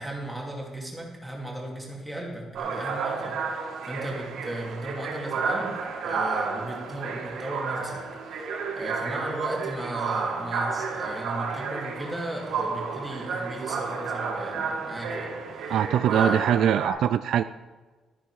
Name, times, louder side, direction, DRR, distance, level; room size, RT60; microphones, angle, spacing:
voice 1, 0.0-15.8 16.1-16.7, right 1 dB, 5° right, -3 dB, 2.4 m, -36 dB
sound 1, 2.6-16.9, right 4 dB, 85° right, 2.1 m, -31 dB
voice 2, 15.7-17.4, right 10 dB, 60° right, 13 dB, 0.3 m, -22 dB
12.5 x 10.0 x 4.8 m, 1.3 s
cardioid pair, 175°, 0 cm